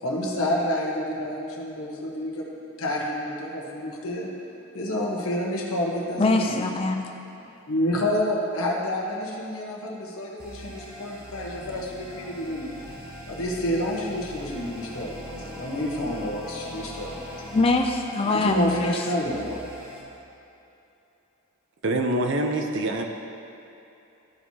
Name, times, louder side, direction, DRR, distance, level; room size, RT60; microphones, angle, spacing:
voice 1, 0.0-2.4 2.8-4.3 4.7-6.7 7.7-12.7 13.3-17.5 18.2-19.7, left 1 dB, 85° left, -2 dB, 1.2 m, -29 dB
voice 2, 6.2-7.1 17.5-19.0, left 3 dB, 25° left, 3 dB, 0.4 m, -23 dB
sound 1, 10.4-20.0, equal, 45° right, 1.3 m, -41 dB
voice 3, 21.8-23.0, right 1 dB, 60° right, 4 dB, 0.6 m, -25 dB
13.0 x 4.6 x 2.8 m, 2.9 s
head